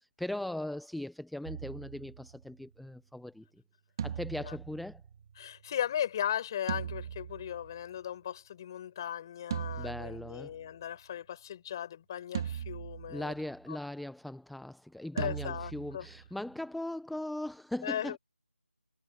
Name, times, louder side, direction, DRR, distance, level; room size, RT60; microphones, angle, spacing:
voice 1, 0.0-3.6 4.0-5.0 9.8-10.6 13.1-18.2, left 1 dB, ahead, 0.5 m, -39 dB
sound 1, 1.4-2.7 4.0-5.7 6.7-8.0 9.5-10.9 12.3-13.5 15.2-16.6, right 8 dB, 20° right, 1.8 m, -40 dB
voice 2, 5.4-13.3 13.7-13.8 15.1-16.1 17.8-18.2, left 10 dB, 20° left, 4.3 m, -37 dB
figure-of-eight pair, 170°, 7 cm